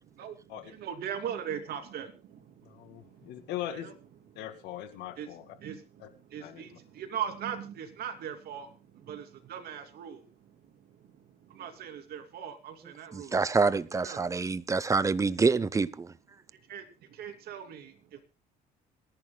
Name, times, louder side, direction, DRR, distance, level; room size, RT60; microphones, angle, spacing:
voice 1, 0.8-2.1 3.7-3.9 5.2-5.3 5.6-5.8 6.3-6.7 7.0-8.7 9.1-9.2 9.5-10.2 11.6-13.3 14.0-14.2 16.7-16.8 17.2-17.8, right 8 dB, 65° right, 2.9 m, -38 dB
voice 2, 2.6-3.9 4.4-5.5 6.0-6.1 6.4-6.6, left 12 dB, 85° left, 2.2 m, -40 dB
voice 3, 13.1-16.1, right 4 dB, 20° right, 0.7 m, -26 dB
27.5 x 11.0 x 2.3 m
cardioid pair, 110°, 17 cm